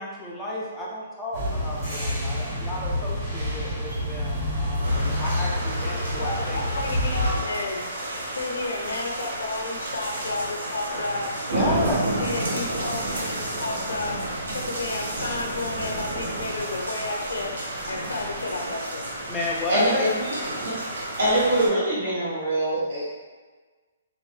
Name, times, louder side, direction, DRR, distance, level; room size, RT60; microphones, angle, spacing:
voice 1, 0.0-6.6 11.4-12.0 19.3-20.1, left 1 dB, 5° left, -5 dB, 0.4 m, -32 dB
sound 1, 1.3-7.4, left 1 dB, 25° right, 1.3 m, -27 dB
sound 2, 4.8-21.7, right 1 dB, 90° right, 0.6 m, -31 dB
voice 2, 6.2-7.8 8.3-11.3 12.2-14.2 14.5-17.5 17.9-19.1, left 2 dB, 80° left, 0 dB, 0.6 m, -32 dB
voice 3, 19.7-23.1, right 1 dB, 55° right, -8 dB, 1.1 m, -24 dB
2.6 x 2.1 x 3.2 m, 1.3 s
hypercardioid pair, 170°, 0 cm